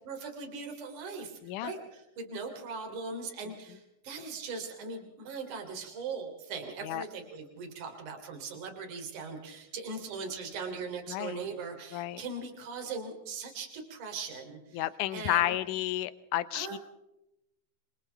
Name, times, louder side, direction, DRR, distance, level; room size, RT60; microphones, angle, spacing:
voice 1, 0.1-14.8 15.1-15.6 16.5-16.8, right 4 dB, 55° right, 3 dB, 4.5 m, -40 dB
voice 2, 1.4-1.7 6.8-7.0 11.1-11.4 11.9-12.2 14.7-16.8, left 14 dB, 75° left, 14 dB, 1.9 m, -31 dB
27.5 x 27.0 x 3.5 m, 0.89 s
omnidirectional pair, 4.5 m